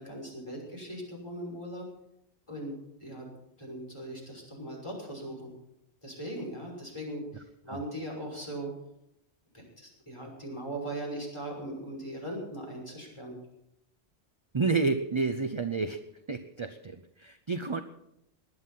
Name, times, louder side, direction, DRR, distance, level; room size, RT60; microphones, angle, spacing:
voice 1, 0.0-1.9 2.5-2.8 3.0-3.3 3.6-5.5 6.0-8.7 9.5-13.3, right 1 dB, 25° left, -2 dB, 5.8 m, -39 dB
voice 2, 14.5-16.0 16.3-17.8, right 4 dB, 30° right, 9 dB, 0.7 m, -30 dB
19.0 x 11.0 x 5.7 m, 0.80 s
omnidirectional pair, 1.2 m